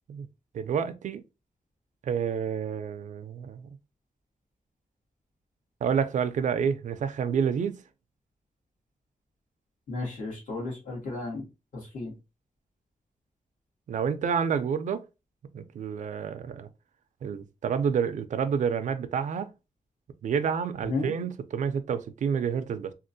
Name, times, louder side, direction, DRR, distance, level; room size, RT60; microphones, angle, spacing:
voice 1, 0.5-1.2 2.0-3.7 5.8-7.8 13.9-15.0 15.5-16.7 17.2-19.5 20.2-22.9, right 7 dB, 65° right, 0.4 m, -29 dB
voice 2, 9.9-11.5 11.9-12.1 20.8-21.1, left 3 dB, 70° left, 1.8 m, -33 dB
3.5 x 2.4 x 2.6 m
wide cardioid pair, 170°, 14 cm